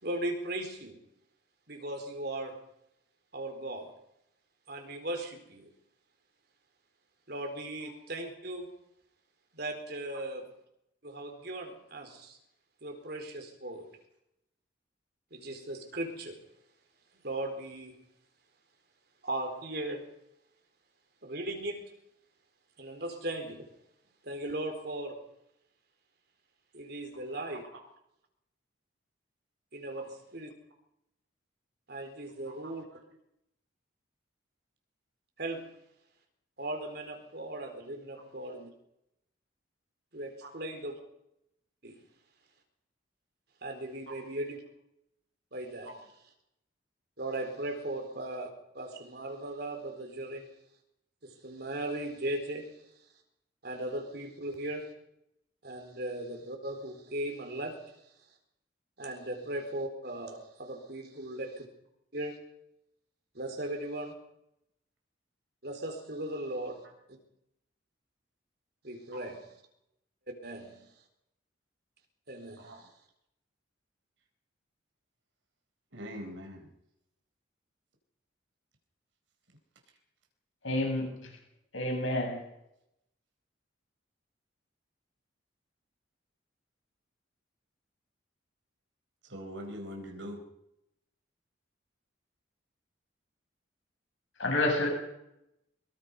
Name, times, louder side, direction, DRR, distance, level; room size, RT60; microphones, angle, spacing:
voice 1, 0.0-1.0 1.7-2.6 3.3-3.9 4.7-5.7 7.3-8.7 9.5-10.5 11.0-12.4 12.8-13.9 15.3-16.4 17.2-18.0 19.2-20.1 21.2-21.9 22.8-23.7 24.2-25.2 26.7-27.6 29.7-30.5 31.9-32.8 35.4-35.7 36.6-38.7 40.1-40.9 41.8-42.0 43.6-44.6 45.5-45.9 47.2-50.5 51.2-52.7 53.6-54.9 55.6-57.8 59.0-61.7 62.1-62.4 63.3-64.1 65.6-66.8 68.8-69.5 70.3-70.8 72.3-72.9, right 1 dB, 55° right, 4 dB, 4.2 m, -38 dB
voice 2, 75.9-76.7 89.3-90.4, equal, 75° right, 3 dB, 4.2 m, -42 dB
voice 3, 80.6-81.3 81.7-82.4 94.4-94.9, left 1 dB, 80° left, 1 dB, 7.6 m, -29 dB
23.5 x 22.5 x 5.5 m, 0.81 s
head